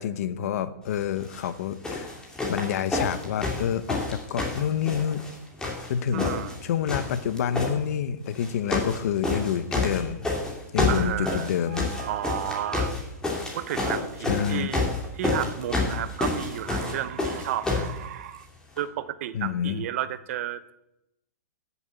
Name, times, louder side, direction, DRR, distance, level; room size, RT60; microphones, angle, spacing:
voice 1, 0.0-2.1 2.5-5.2 5.9-6.3 6.6-10.3 10.7-12.1 14.3-14.7 19.3-19.8, left 9 dB, 60° left, 13 dB, 1.0 m, -28 dB
sound 1, 1.2-1.5 1.8-5.3 5.6-6.6 6.9-7.7 8.3-9.0 9.2-17.9 18.8-18.9, left 3 dB, 10° left, 2.6 m, -28 dB
voice 2, 6.1-6.6 10.9-13.0 13.5-14.9 15.1-18.5 18.8-20.7, right 11 dB, 50° right, 14 dB, 0.8 m, -32 dB
10.5 x 7.3 x 8.3 m, 0.88 s
hypercardioid pair, 150°, 9 cm